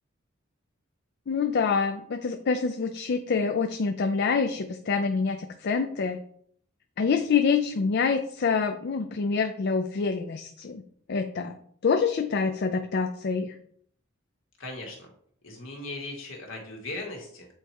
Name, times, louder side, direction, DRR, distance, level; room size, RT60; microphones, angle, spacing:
voice 1, 1.3-6.2 7.0-10.8 11.1-11.6 11.8-13.5, left 5 dB, 55° left, 7 dB, 0.4 m, -26 dB
voice 2, 14.6-15.1 15.4-17.5, left 2 dB, 70° left, 0 dB, 1.8 m, -38 dB
8.2 x 2.9 x 4.5 m, 0.62 s
head